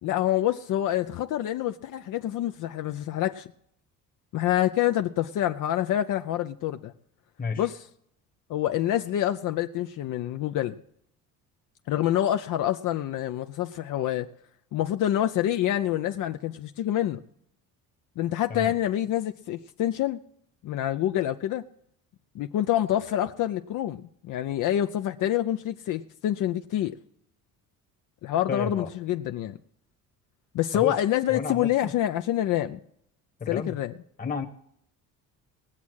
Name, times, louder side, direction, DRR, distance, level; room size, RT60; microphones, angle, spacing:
voice 1, 0.0-3.5 4.3-6.9 7.6-7.8 8.5-10.8 11.9-14.3 14.7-17.2 18.2-20.2 20.6-21.6 22.3-27.0 28.2-29.6 30.5-32.8 33.5-33.9, left 12 dB, 60° left, 8 dB, 0.6 m, -27 dB
voice 2, 7.4-7.7 18.5-18.7 28.5-28.9 30.7-31.0 31.3-31.9 33.4-33.7 34.2-34.4, left 5 dB, 25° left, 5 dB, 1.2 m, -31 dB
19.0 x 7.2 x 6.3 m, 0.70 s
cardioid pair, 110°, 34 cm